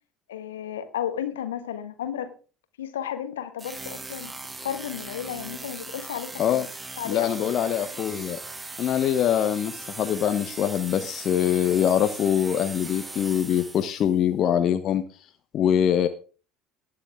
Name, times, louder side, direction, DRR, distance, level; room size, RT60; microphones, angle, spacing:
voice 1, 0.3-2.3 2.8-4.3 4.6-6.6 7.0-7.7, left 9 dB, 70° left, 9 dB, 1.4 m, -33 dB
sound 1, 3.6-14.1, right 3 dB, 15° right, 1.2 m, -39 dB
voice 2, 7.0-8.4 8.8-15.0 15.5-16.1, left 9 dB, 45° left, 8 dB, 0.9 m, -23 dB
20.0 x 6.8 x 3.6 m, 0.37 s
figure-of-eight pair, 65°, 0 cm